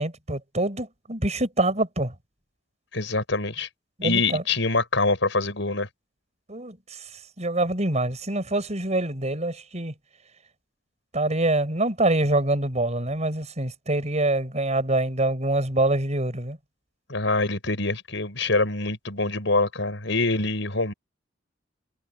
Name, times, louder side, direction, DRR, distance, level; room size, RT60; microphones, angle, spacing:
voice 1, 0.0-2.1 4.0-4.4 6.5-7.0 7.4-9.9 11.1-16.6, right 2 dB, 35° right, 5.2 m, -25 dB
voice 2, 2.9-3.7 4.0-5.9 17.1-20.9, left 3 dB, 75° left, 6.3 m, -25 dB
head